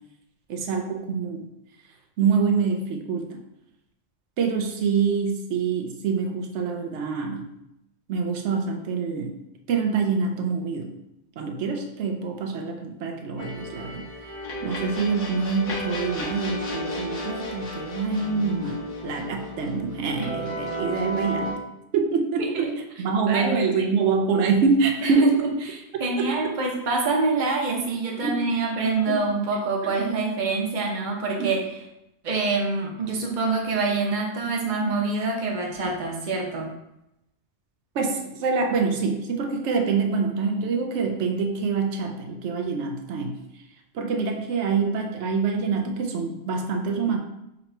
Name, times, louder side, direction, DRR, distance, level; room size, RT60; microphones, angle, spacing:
voice 1, 0.5-1.5 2.2-3.4 4.4-7.5 8.1-9.3 9.7-10.9 11.4-14.1 14.6-21.6 21.9-22.7 23.0-25.4 26.2-26.5 28.2-28.4 29.1-29.2 29.8-30.1 31.4-31.5 37.9-43.4 43.9-47.2, right 5 dB, 90° right, 3 dB, 0.9 m, -25 dB
sound 1, 13.4-21.5, left 1 dB, 55° left, 1.4 m, -33 dB
voice 2, 23.3-23.7 25.0-25.1 26.0-31.6 32.2-36.7, right 3 dB, 45° right, 0 dB, 0.9 m, -26 dB
4.0 x 3.0 x 4.4 m, 0.86 s
omnidirectional pair, 1.1 m